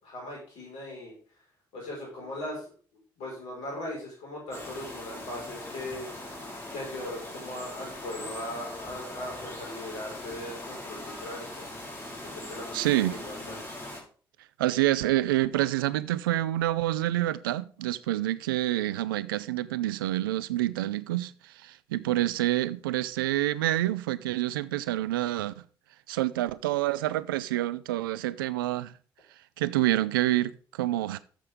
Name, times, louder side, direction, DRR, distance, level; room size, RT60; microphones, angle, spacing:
voice 1, 0.0-1.1 1.7-2.6 3.2-6.1 6.7-11.7 12.2-13.6, left 1 dB, 70° left, 5.5 m, -39 dB
sound 1, 4.5-14.0, left 1 dB, 25° left, 4.6 m, -41 dB
voice 2, 12.7-13.2 14.6-25.5 26.1-28.9 29.6-31.2, right 15 dB, 85° right, 0.4 m, -27 dB
11.5 x 7.8 x 3.8 m
hypercardioid pair, 40°, 11 cm